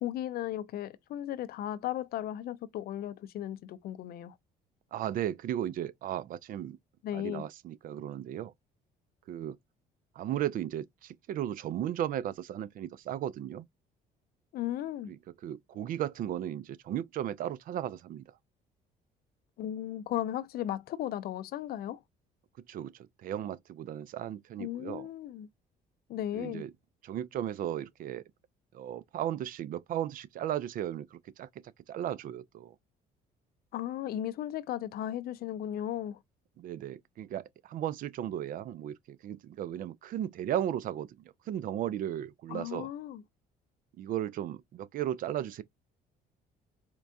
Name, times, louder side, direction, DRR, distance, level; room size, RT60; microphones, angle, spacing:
voice 1, 0.0-4.4 7.0-7.5 14.5-15.1 19.6-22.0 24.6-25.5 26.1-26.6 33.7-36.2 42.5-43.2, left 12 dB, 65° left, 0.5 m, -36 dB
voice 2, 4.9-6.8 7.1-8.5 9.3-9.6 10.2-13.7 15.1-15.2 15.4-18.2 22.7-22.9 23.2-25.1 26.3-26.7 27.0-28.2 28.7-31.5 31.9-32.7 36.6-41.1 41.5-42.9 44.0-45.6, right 11 dB, 55° right, 0.4 m, -35 dB
4.4 x 2.2 x 2.6 m
cardioid pair, 110°, 17 cm